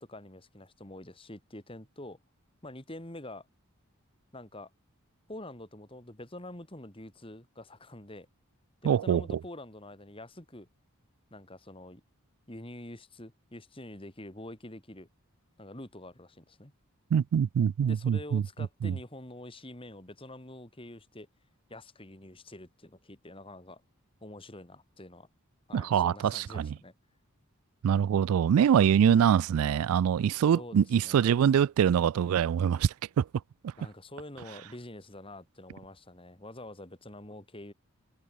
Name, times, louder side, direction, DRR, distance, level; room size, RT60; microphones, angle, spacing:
voice 1, 0.0-2.2 2.6-3.5 4.3-4.7 5.3-8.3 8.8-10.7 11.3-12.0 12.5-15.1 15.6-16.7 17.9-21.3 21.7-23.8 24.2-25.3 25.7-26.9 30.5-31.3 33.8-37.7, left 1 dB, 25° left, 2.8 m, -46 dB
voice 2, 8.8-9.2 17.1-18.4 18.8-19.0 25.7-26.7 27.8-33.3 33.6-33.7, right 8 dB, 75° right, 0.3 m, -24 dB
head